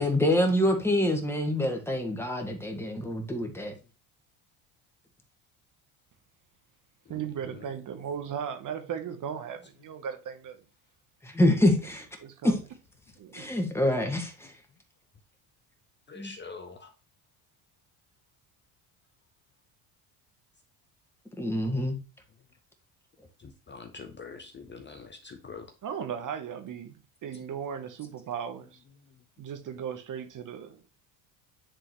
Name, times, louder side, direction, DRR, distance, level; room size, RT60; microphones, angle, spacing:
voice 1, 0.0-3.7 11.2-12.1 12.4-12.5 13.3-14.5 16.2-16.3 21.4-22.0, left 1 dB, 5° left, 1.8 m, -26 dB
voice 2, 7.1-10.6 12.2-12.6 13.2-13.4 25.8-28.8 29.4-30.8, right 8 dB, 45° right, 1.1 m, -37 dB
voice 3, 16.1-16.9 23.4-25.7, left 4 dB, 25° left, 0.8 m, -44 dB
10.0 x 3.7 x 3.1 m
supercardioid pair, 85°, 43 cm